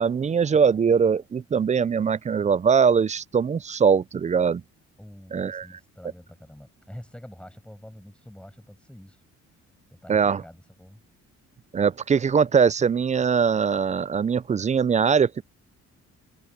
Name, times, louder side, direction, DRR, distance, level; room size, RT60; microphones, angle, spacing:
voice 1, 0.0-4.6 5.3-5.7 10.1-10.4 11.7-15.4, right 6 dB, 25° right, 0.4 m, -21 dB
voice 2, 5.0-9.2 9.5-9.6 9.9-11.0, equal, 5° left, 6.0 m, -46 dB
cardioid pair, 90°, 30 cm